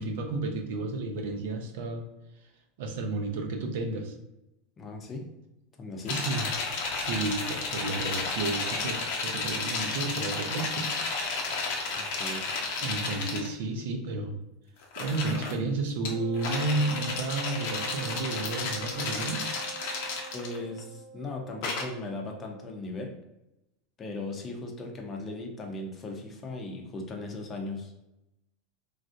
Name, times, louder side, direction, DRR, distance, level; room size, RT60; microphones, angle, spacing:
voice 1, 0.0-2.1 2.8-4.1 6.1-6.5 6.9-10.9 12.1-12.4 12.8-14.4 15.0-19.4, right 3 dB, 75° right, 3 dB, 0.6 m, -32 dB
voice 2, 4.8-5.3 5.8-6.2 12.0-12.4 20.3-23.1 24.0-27.9, left 2 dB, 25° left, 2 dB, 0.6 m, -38 dB
sound 1, 6.1-13.5 14.8-15.5 16.0-20.8 21.6-21.8, left 4 dB, 70° left, 0.7 m, -32 dB
Wind instrument woodwind instrument, 16.1-22.7, right 7 dB, 50° right, 0.8 m, -44 dB
3.1 x 2.4 x 2.6 m, 0.89 s
supercardioid pair, 135°, 0 cm